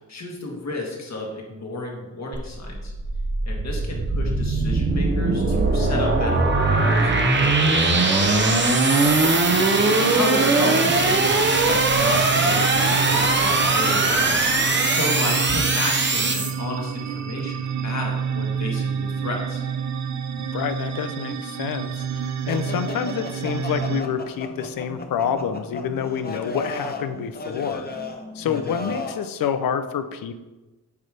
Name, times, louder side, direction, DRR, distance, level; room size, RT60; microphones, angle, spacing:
voice 1, 0.1-2.9 3.4-7.2 7.5-8.4 9.9-14.3 14.8-19.6 28.4-28.9, left 2 dB, 55° left, -1 dB, 1.9 m, -32 dB
sound 1, 2.3-16.5, right 3 dB, 35° right, 0.9 m, -20 dB
voice 2, 9.0-9.7 20.4-27.9 28.3-30.3, left 8 dB, 85° left, 10 dB, 0.6 m, -28 dB
sound 2, 9.5-24.0, right 7 dB, 55° right, 0.5 m, -29 dB
sound 3, 22.5-29.3, left 2 dB, 30° left, 0.8 m, -35 dB
8.3 x 3.2 x 5.1 m, 1.1 s
cardioid pair, 75°, 33 cm